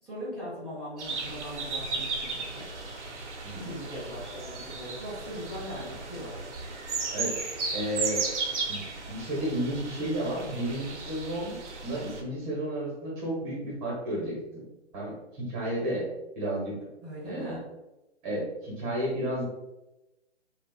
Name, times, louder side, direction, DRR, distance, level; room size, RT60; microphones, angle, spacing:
voice 1, 0.0-2.6 3.6-6.4 17.0-17.6, equal, 5° right, -15 dB, 0.5 m, -40 dB
sound 1, 1.0-12.2, right 4 dB, 80° right, 0.7 m, -35 dB
voice 2, 7.7-8.2 8.7-11.6 11.8-14.6 14.9-16.1 16.3-16.7 17.2-17.6 18.2-19.4, right 1 dB, 20° right, -5 dB, 1.1 m, -32 dB
3.0 x 2.4 x 2.3 m, 0.99 s
hypercardioid pair, 145°, 35 cm